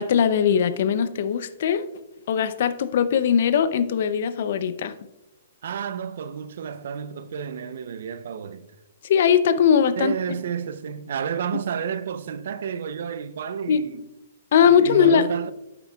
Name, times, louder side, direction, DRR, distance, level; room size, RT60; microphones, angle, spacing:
voice 1, 0.0-1.9 2.3-4.9 9.0-10.2 13.7-13.8 14.5-15.3, left 7 dB, 60° left, 0.5 m, -20 dB
voice 2, 5.6-8.7 10.0-14.0 14.6-15.5, right 7 dB, 65° right, 0.5 m, -31 dB
9.0 x 7.5 x 2.3 m
hypercardioid pair, 135°, 0 cm